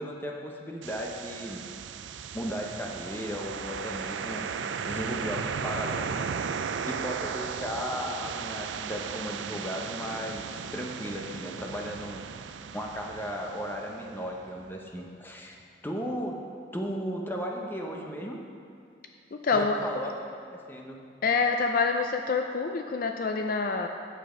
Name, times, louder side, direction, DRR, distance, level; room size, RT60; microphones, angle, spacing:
voice 1, 0.0-1.7 2.3-4.5 4.9-6.1 6.8-12.3 12.7-16.4 16.7-18.4 19.5-21.0, equal, 10° left, 0 dB, 0.8 m, -35 dB
sound 1, 0.8-14.7, right 6 dB, 75° right, 0.4 m, -36 dB
voice 2, 19.3-19.8 21.2-23.9, left 4 dB, 50° left, 5 dB, 0.4 m, -26 dB
9.3 x 7.4 x 5.0 m, 2.4 s
head